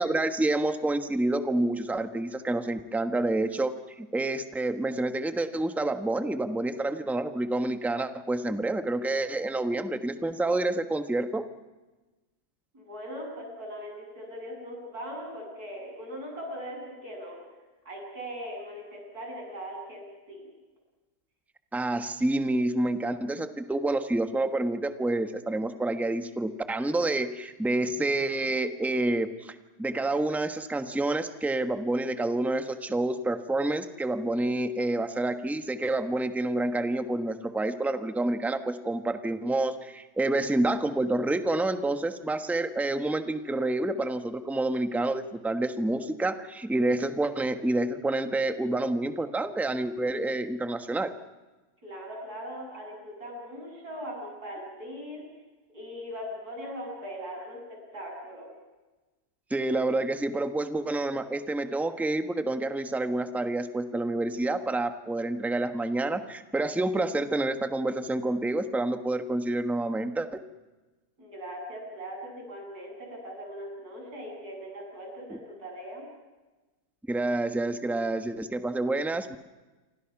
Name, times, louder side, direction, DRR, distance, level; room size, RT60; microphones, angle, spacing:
voice 1, 0.0-3.7 4.0-11.4 21.7-51.1 59.5-70.4 75.3-75.4 77.1-79.4, right 2 dB, ahead, 8 dB, 0.9 m, -28 dB
voice 2, 12.7-17.4 17.9-20.0 20.3-20.5 51.8-55.2 55.7-58.5 71.2-76.1, equal, 45° right, 0 dB, 8.7 m, -40 dB
28.5 x 25.0 x 6.0 m, 1.2 s
omnidirectional pair, 2.2 m